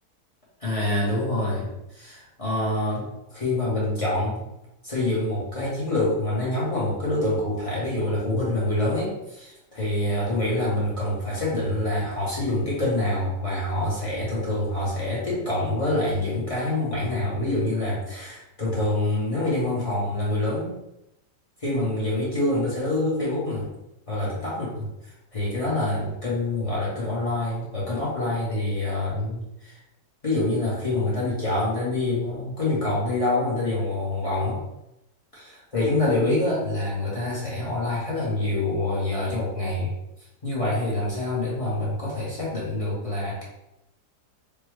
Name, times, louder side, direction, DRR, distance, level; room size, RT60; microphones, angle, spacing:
voice 1, 0.6-4.4 4.8-20.7 21.6-23.7 24.1-24.9 25.3-29.8 30.2-34.6 35.3-39.9 40.4-43.4, left 1 dB, 30° left, -7 dB, 0.6 m, -26 dB
3.4 x 2.1 x 3.1 m, 0.88 s
omnidirectional pair, 1.8 m